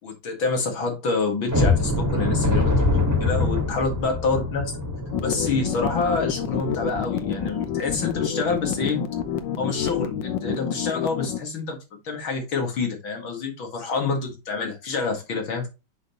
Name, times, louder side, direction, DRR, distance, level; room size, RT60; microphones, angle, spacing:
voice 1, 0.0-2.8 3.2-4.7 5.2-9.1 9.6-15.7, left 4 dB, 90° left, 2.9 m, -27 dB
sound 1, 1.5-8.2 8.6-8.7 9.2-9.3 9.8-10.0, left 2 dB, 10° right, 1.5 m, -25 dB
sound 2, 5.1-11.4, left 9 dB, 70° left, 1.5 m, -28 dB
7.8 x 5.8 x 3.0 m
omnidirectional pair, 2.1 m